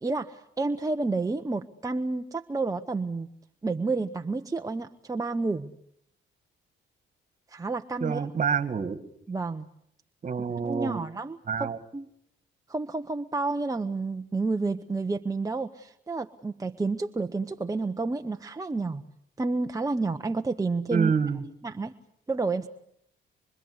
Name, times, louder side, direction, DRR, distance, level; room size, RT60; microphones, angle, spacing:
voice 1, 0.0-3.3 3.6-5.7 7.5-8.3 9.3-9.7 10.6-12.1 12.7-19.0 19.4-21.1 21.6-21.9 22.3-22.7, right 3 dB, 15° right, 6 dB, 1.0 m, -30 dB
voice 2, 8.0-9.0 10.2-11.1 11.5-11.8 20.9-21.4, right 6 dB, 40° right, 12 dB, 2.2 m, -27 dB
25.5 x 24.5 x 8.2 m, 0.71 s
cardioid pair, 90°, 20 cm